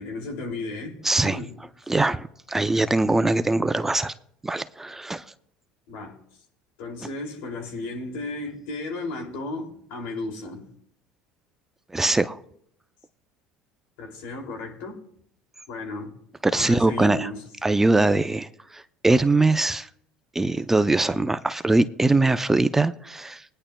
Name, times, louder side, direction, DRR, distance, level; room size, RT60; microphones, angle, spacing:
voice 1, 0.0-1.0 1.2-1.5 5.9-6.2 6.8-10.7 14.0-15.0 15.7-16.1 16.5-17.4, left 2 dB, 70° left, 2.6 m, -34 dB
voice 2, 1.0-1.4 1.9-4.1 4.4-5.2 11.9-12.4 16.4-17.3 17.6-19.9 20.3-23.4, right 2 dB, 10° right, 0.5 m, -22 dB
20.0 x 10.0 x 2.2 m
hypercardioid pair, 80°, 3 cm